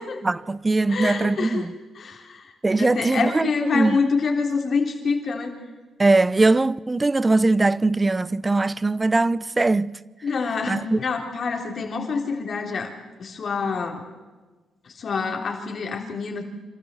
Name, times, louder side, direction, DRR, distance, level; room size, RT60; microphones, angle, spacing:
voice 1, 0.2-1.7 2.6-4.0 6.0-10.0 10.7-11.0, right 2 dB, 25° right, 0.6 m, -21 dB
voice 2, 0.9-1.7 1.9-2.5 2.8-5.6 10.2-12.9 13.2-14.0 14.8-16.4, left 5 dB, 55° left, 3.5 m, -26 dB
25.5 x 13.5 x 7.7 m
supercardioid pair, 65°, 0 cm